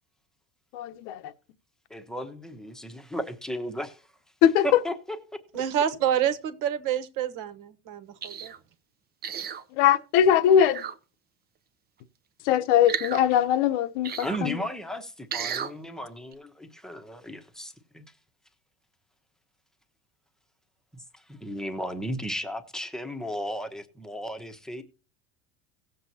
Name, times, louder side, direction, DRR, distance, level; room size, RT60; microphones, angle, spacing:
voice 1, 0.7-1.3 4.4-4.8 9.8-10.8 12.4-14.6, left 9 dB, 70° left, 1.1 m, -21 dB
voice 2, 1.9-4.1 4.6-5.6 14.2-18.0 20.9-24.8, equal, ahead, 1.0 m, -35 dB
voice 3, 5.5-8.5, right 9 dB, 55° right, 1.5 m, -28 dB
sound 1, 8.2-8.6 9.2-9.6 10.6-10.9 12.9-13.2 14.0-14.4 15.3-15.7 16.3-16.4, right 8 dB, 25° right, 0.7 m, -33 dB
17.5 x 7.7 x 2.8 m
supercardioid pair, 140°, 37 cm